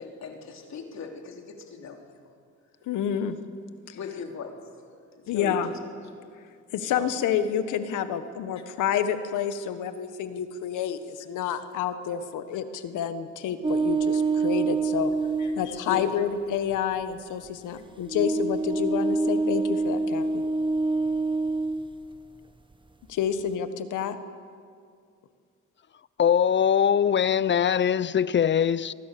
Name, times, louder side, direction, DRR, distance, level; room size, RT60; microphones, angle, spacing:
voice 1, 0.0-2.0 3.9-4.6 5.3-5.6 6.9-7.1 15.4-15.5 15.9-16.1, left 5 dB, 65° left, 2 dB, 3.5 m, -37 dB
voice 2, 2.8-3.4 3.9-4.0 5.3-5.7 6.7-15.1 15.6-20.4 23.1-24.2, left 8 dB, 85° left, 10 dB, 1.5 m, -29 dB
sound 1, 13.6-15.7 16.7-16.8 18.0-21.9, right 3 dB, 15° right, 1.0 m, -26 dB
voice 3, 26.2-28.9, left 8 dB, 40° left, 18 dB, 0.7 m, -22 dB
25.5 x 19.5 x 6.9 m, 2.3 s
cardioid pair, 90°, 30 cm